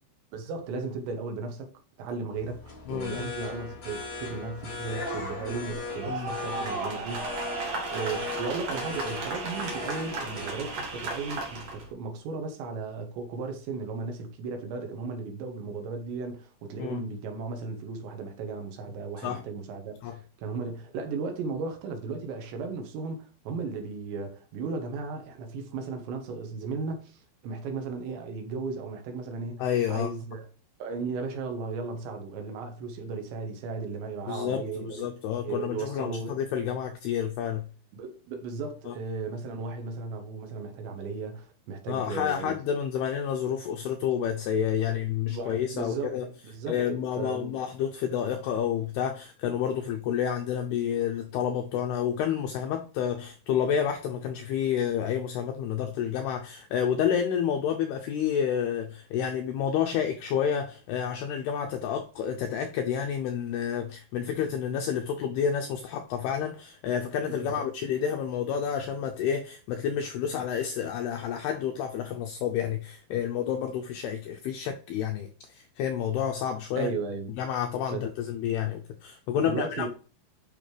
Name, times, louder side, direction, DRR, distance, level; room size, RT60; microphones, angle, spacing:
voice 1, 0.3-1.7 2.0-7.4 7.9-30.5 30.8-35.1 35.4-36.4 37.9-42.5 44.9-45.0 45.3-46.2 46.4-47.5 67.3-67.6 76.8-77.3 77.9-78.1 79.4-79.9, right 4 dB, 75° right, 3.4 m, -35 dB
sound 1, 2.3-11.9, left 3 dB, 30° left, 3.2 m, -39 dB
voice 2, 2.9-3.3 6.1-6.3 16.8-17.0 19.2-19.4 20.0-20.2 29.6-30.1 34.3-37.6 38.9-39.0 41.9-46.3 46.7-76.9 77.4-79.9, left 8 dB, 85° left, 2.3 m, -29 dB
sound 2, 5.9-11.8, right 3 dB, 50° right, 2.1 m, -34 dB
8.8 x 5.9 x 3.3 m
omnidirectional pair, 5.5 m